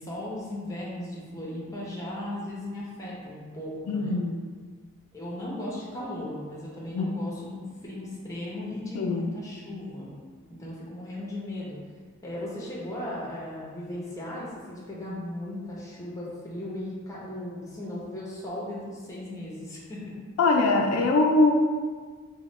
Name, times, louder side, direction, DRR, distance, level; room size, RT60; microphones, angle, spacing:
voice 1, 0.0-4.2 5.1-10.1 10.5-11.8 12.2-20.1, left 1 dB, 15° left, -6 dB, 0.6 m, -36 dB
voice 2, 3.9-4.4 6.9-7.1 8.9-9.3 20.4-21.5, left 2 dB, 80° left, 2 dB, 0.3 m, -22 dB
2.9 x 2.1 x 3.1 m, 1.5 s
head